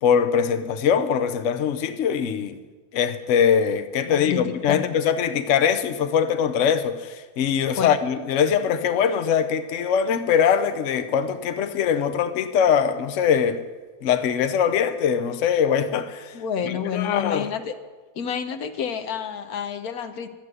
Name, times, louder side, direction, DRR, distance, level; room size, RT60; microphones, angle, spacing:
voice 1, 0.0-2.6 2.9-13.6 14.0-16.4 16.6-17.5, left 7 dB, 60° left, 1.0 m, -22 dB
voice 2, 4.1-4.8 7.8-7.9 16.3-17.7 18.2-20.3, left 8 dB, 80° left, 1.3 m, -29 dB
12.0 x 7.7 x 9.6 m
omnidirectional pair, 1.6 m